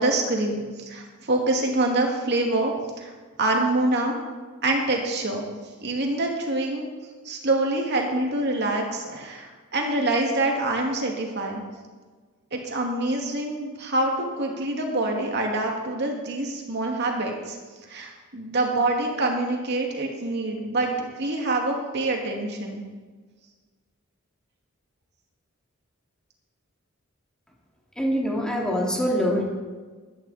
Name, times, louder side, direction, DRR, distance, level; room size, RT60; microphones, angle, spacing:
voice 1, 0.0-2.7 3.0-3.1 3.4-4.2 4.6-5.5 5.8-6.9 7.2-11.6 12.5-17.6 17.9-22.8, right 2 dB, 55° right, 1 dB, 2.3 m, -25 dB
voice 2, 28.0-29.4, equal, 5° left, -3 dB, 2.6 m, -24 dB
15.0 x 12.0 x 4.2 m, 1.4 s
head